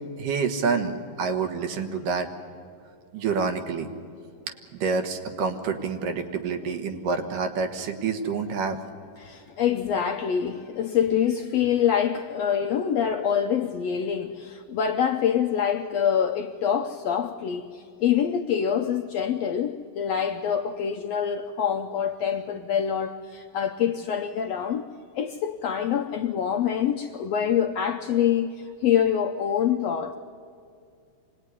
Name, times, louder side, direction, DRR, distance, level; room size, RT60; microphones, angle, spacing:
voice 1, 0.2-2.3 3.1-3.9 4.7-8.8, right 5 dB, 80° right, 3.1 m, -27 dB
voice 2, 9.2-24.9 25.1-30.1, left 8 dB, 80° left, 1.5 m, -25 dB
25.5 x 19.0 x 9.8 m
omnidirectional pair, 3.8 m